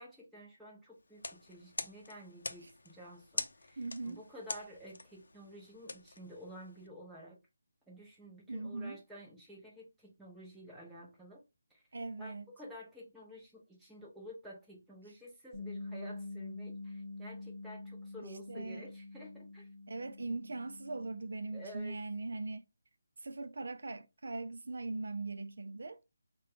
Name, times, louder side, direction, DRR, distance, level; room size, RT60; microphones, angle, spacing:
voice 1, 0.0-7.4 7.9-11.4 11.7-11.8 12.2-19.7 21.5-22.0, equal, ahead, 0.7 m, -51 dB
sound 1, 1.1-6.9, left 3 dB, 75° left, 0.5 m, -45 dB
voice 2, 3.8-4.2 8.5-9.0 11.9-12.5 18.5-18.9 19.9-22.6 23.2-26.0, right 3 dB, 65° right, 0.3 m, -40 dB
Bass guitar, 15.5-21.8, left 2 dB, 20° left, 1.1 m, -46 dB
3.6 x 2.2 x 3.5 m
hypercardioid pair, 175°, 0 cm